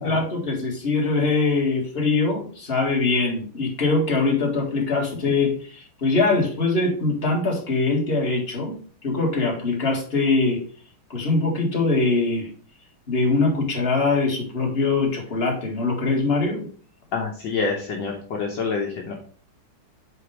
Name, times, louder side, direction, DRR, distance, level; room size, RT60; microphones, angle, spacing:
voice 1, 0.0-10.6 11.1-12.5 13.1-16.7, left 3 dB, 30° left, -1 dB, 2.0 m, -22 dB
voice 2, 17.1-19.1, left 4 dB, 65° left, 0 dB, 1.6 m, -27 dB
6.6 x 4.3 x 4.9 m, 0.43 s
omnidirectional pair, 2.3 m